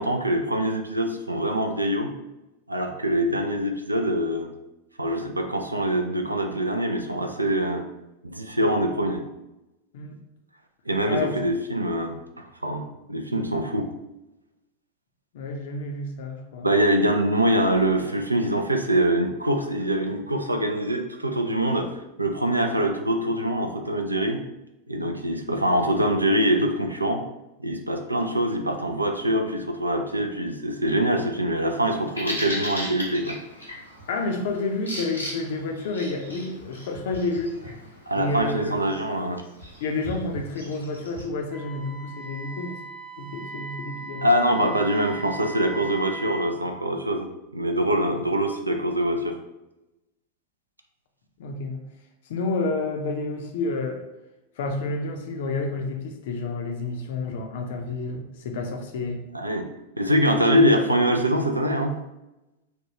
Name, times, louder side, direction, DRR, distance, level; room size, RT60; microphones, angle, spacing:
voice 1, 0.0-2.1 2.7-4.5 5.0-7.8 8.2-9.2 10.9-12.2 12.6-13.9 16.6-21.9 22.2-24.4 24.9-27.2 27.6-33.4 38.1-39.4 44.2-47.3 47.5-49.4 59.3-59.7 60.0-62.0, right 1 dB, 85° right, 4 dB, 0.3 m, -24 dB
voice 2, 15.3-16.7 34.1-37.5 38.2-38.8 39.8-42.8 43.2-44.2 51.4-51.8 52.3-54.0 54.6-59.2, left 3 dB, 55° left, 4 dB, 0.5 m, -30 dB
Bird vocalization bird call bird song, 31.8-41.3, equal, 85° left, 0.7 m, -37 dB
Wind instrument woodwind instrument, 41.5-46.5, right 2 dB, 40° right, 0.6 m, -39 dB
3.3 x 2.2 x 2.8 m, 0.96 s
figure-of-eight pair, 90°, 0 cm